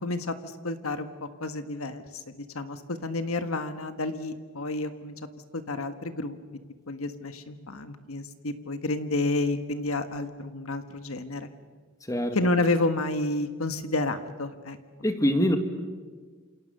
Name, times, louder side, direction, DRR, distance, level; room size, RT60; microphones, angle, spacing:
voice 1, 0.0-5.1 5.5-6.4 6.9-11.5 12.3-14.8, left 2 dB, 75° left, 9 dB, 1.5 m, -30 dB
voice 2, 15.0-15.6, equal, 15° left, 6 dB, 2.1 m, -24 dB
28.0 x 27.5 x 6.8 m, 1.5 s
head